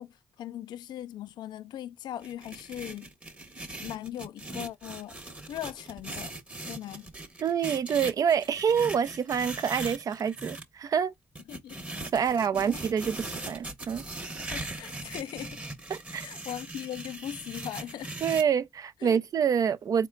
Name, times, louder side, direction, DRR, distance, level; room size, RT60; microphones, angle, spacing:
voice 1, 0.0-3.1 3.8-5.2 5.5-6.4 6.6-7.1 11.5-11.8 12.1-12.8 14.4-15.6 16.2-18.1 19.0-19.2, left 11 dB, 80° left, 0.4 m, -39 dB
sound 1, 2.2-10.6 11.4-18.4, right 2 dB, 15° right, 0.9 m, -40 dB
voice 2, 7.4-11.1 12.1-14.1 15.9-16.3 18.2-20.1, right 7 dB, 55° right, 0.4 m, -27 dB
4.0 x 2.1 x 3.7 m
cardioid pair, 85°, 7 cm